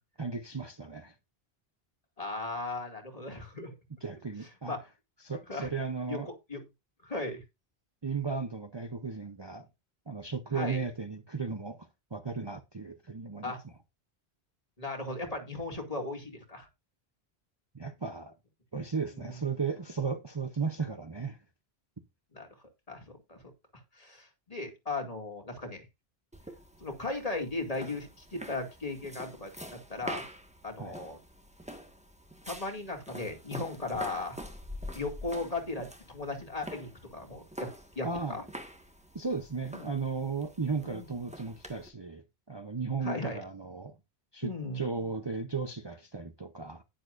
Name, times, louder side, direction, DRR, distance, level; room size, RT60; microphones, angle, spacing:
voice 1, 0.2-1.1 4.0-4.8 5.2-6.3 8.0-9.7 10.1-13.6 17.7-18.3 18.7-21.4 30.8-31.0 38.0-38.4 39.1-43.9 44.3-46.8, right 5 dB, 25° right, 0.8 m, -35 dB
voice 2, 2.2-3.8 4.7-4.8 5.5-5.7 6.1-6.6 7.0-7.4 10.5-10.8 13.4-13.6 14.8-16.7 19.2-19.3 22.3-22.5 22.9-23.4 23.9-25.8 26.8-30.2 30.6-31.2 32.5-34.4 34.9-37.7 38.0-38.4 39.7-39.9 40.7-41.1 43.0-43.4 44.4-44.8, left 2 dB, 35° left, 2.5 m, -37 dB
sound 1, 26.3-41.9, equal, 5° right, 1.5 m, -46 dB
10.5 x 10.5 x 2.6 m
omnidirectional pair, 1.1 m